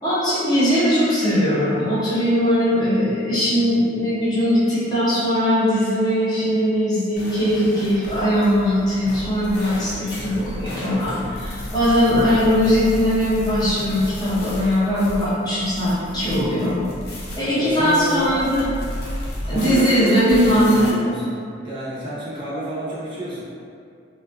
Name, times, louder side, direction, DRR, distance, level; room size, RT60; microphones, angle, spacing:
voice 1, 0.0-16.8 17.4-18.7 19.4-20.9, equal, 20° left, -11 dB, 0.8 m, -20 dB
sound 1, 7.1-20.9, left 1 dB, 55° left, 0.5 m, -33 dB
voice 2, 17.5-18.4 19.4-20.6 20.8-23.4, right 1 dB, 25° right, -9 dB, 0.6 m, -29 dB
2.5 x 2.3 x 2.3 m, 2.3 s
head